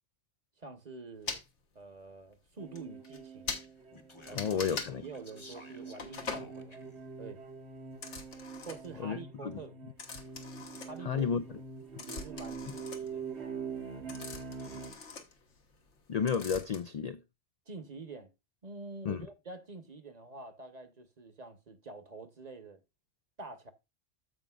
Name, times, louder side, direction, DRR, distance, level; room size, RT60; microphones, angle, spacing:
voice 1, 0.6-1.4 1.7-3.6 4.3-4.6 4.9-6.8 7.2-7.4 8.6-9.8 10.8-11.3 12.0-13.2 17.7-18.3 18.6-22.8 23.4-23.7, right 3 dB, 40° right, 1.1 m, -47 dB
sound 1, 1.3-1.4 2.3-2.4 2.8-2.9 3.0-3.2 3.5-3.7 4.2-4.9 6.0-6.5 7.9-9.0 10.0-11.4 11.7-16.0 16.3-16.8, left 4 dB, 75° left, 1.6 m, -42 dB
sound 2, 2.6-14.9, right 5 dB, 65° right, 1.3 m, -45 dB
Speech, 3.6-7.0, left 2 dB, 25° left, 0.9 m, -54 dB
voice 2, 4.3-5.0 9.0-9.6 11.0-11.4 16.1-17.2 19.0-19.3, left 7 dB, 60° left, 0.4 m, -32 dB
14.5 x 5.2 x 2.3 m
omnidirectional pair, 1.2 m